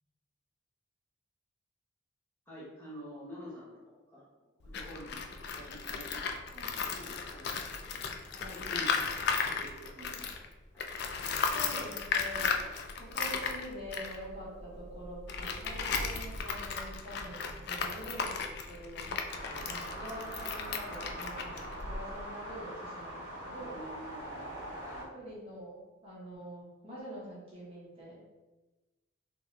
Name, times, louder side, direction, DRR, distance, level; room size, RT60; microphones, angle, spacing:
voice 1, 2.5-6.4 6.8-8.0 8.4-10.3 10.7-10.9 19.4-19.7 23.7-25.0, equal, 10° left, -8 dB, 1.0 m, -49 dB
Tools, 4.6-10.5 10.8-22.2, left 5 dB, 55° left, 0.3 m, -35 dB
voice 2, 11.5-12.6 13.0-19.1 19.6-23.8 25.0-28.2, equal, 30° right, -8 dB, 1.2 m, -45 dB
sound 1, 19.3-25.0, equal, 55° right, 1.0 m, -42 dB
3.5 x 2.8 x 3.2 m, 1.1 s
head